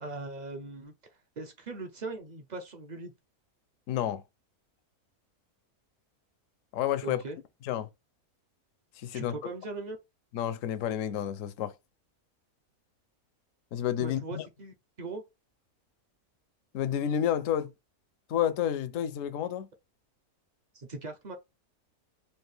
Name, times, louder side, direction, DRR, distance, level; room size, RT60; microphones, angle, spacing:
voice 1, 0.0-0.9 1.4-3.1 7.0-7.4 9.1-10.0 14.0-15.2 20.7-21.4, right 3 dB, 45° right, 0.5 m, -40 dB
voice 2, 3.9-4.2 6.7-7.2 7.6-7.9 9.0-9.4 10.3-11.7 13.7-14.5 16.7-17.7 18.3-19.7, left 10 dB, 65° left, 0.9 m, -30 dB
4.4 x 2.5 x 3.3 m
omnidirectional pair, 1.6 m